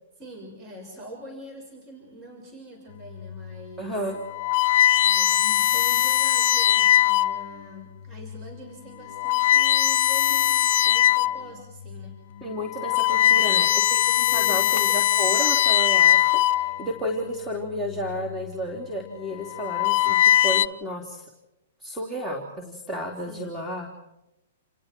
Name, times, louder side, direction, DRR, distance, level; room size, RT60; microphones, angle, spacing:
voice 1, 0.2-3.9 5.0-12.2 13.1-13.6 14.2-14.7 23.3-23.5, equal, 25° right, 1 dB, 6.3 m, -44 dB
sound 1, 3.3-3.5 4.2-7.6 8.3-8.5 9.0-11.5 11.9-12.1 12.6-17.0 18.0-18.4 19.3-20.7, left 12 dB, 55° left, 0.8 m, -21 dB
voice 2, 3.8-4.2 12.4-14.0 14.3-16.2 16.5-21.3 21.8-24.0, equal, 5° right, 0 dB, 3.6 m, -32 dB
29.5 x 29.5 x 4.7 m, 0.91 s
hypercardioid pair, 120°, 0 cm